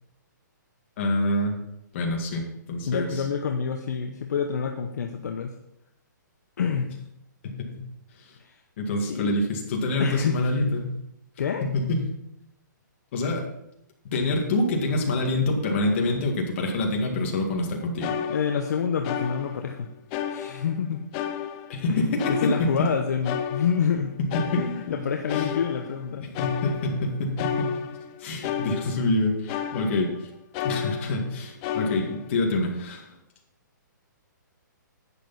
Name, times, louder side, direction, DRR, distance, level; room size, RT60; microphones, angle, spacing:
voice 1, 1.0-1.5 1.9-3.2 7.4-7.8 8.3-8.4 8.8-10.9 11.6-12.0 13.1-13.4 14.0-18.2 21.7-22.7 24.2-24.6 24.9-25.0 25.3-25.5 26.2-27.7 28.2-30.3 30.6-33.1, left 2 dB, 40° left, 1 dB, 2.1 m, -26 dB
voice 2, 2.9-5.5 6.6-6.9 8.4-8.6 9.1-9.3 10.0-10.4 11.4-11.6 18.3-19.9 20.3-21.1 21.9-24.1 24.6-26.2, left 7 dB, 60° left, 4 dB, 0.9 m, -27 dB
sound 1, 17.6-17.7 18.0-19.8 20.1-20.9 21.1-24.0 24.3-30.2 30.5-31.3 31.6-32.3, left 8 dB, 20° left, 0.6 m, -33 dB
11.0 x 8.3 x 4.1 m, 0.81 s
hypercardioid pair, 165°, 10 cm